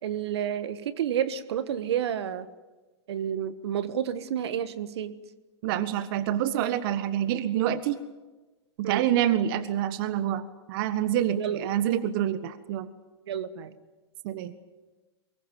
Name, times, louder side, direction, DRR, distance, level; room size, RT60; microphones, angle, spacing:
voice 1, 0.0-2.5 3.1-5.1 8.8-9.0 11.3-11.7 13.3-13.7, right 9 dB, 65° right, 13 dB, 1.5 m, -30 dB
voice 2, 5.6-8.0 8.8-10.4 10.7-12.9 14.2-14.5, right 11 dB, 50° right, 13 dB, 1.4 m, -27 dB
24.0 x 21.5 x 9.1 m, 1.2 s
hypercardioid pair, 110°, 15 cm